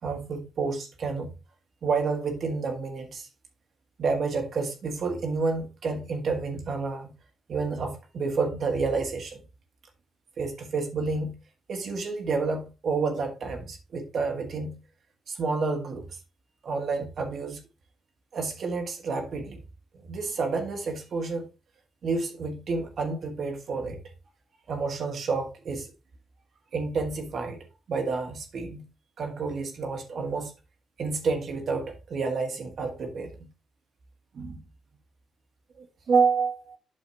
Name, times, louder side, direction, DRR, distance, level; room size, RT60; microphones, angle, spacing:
voice 1, 0.0-1.3 1.8-3.3 4.0-7.1 7.5-9.4 10.4-11.4 11.7-14.8 15.3-16.1 16.6-17.6 18.3-19.6 20.0-21.5 22.0-24.0 24.7-25.9 26.7-27.6 27.9-28.8 29.2-30.5 31.0-33.5 34.3-34.6 35.7-36.8, right 4 dB, 55° right, 1.7 m, -29 dB
8.6 x 6.2 x 2.8 m
cardioid pair, 90°, 0 cm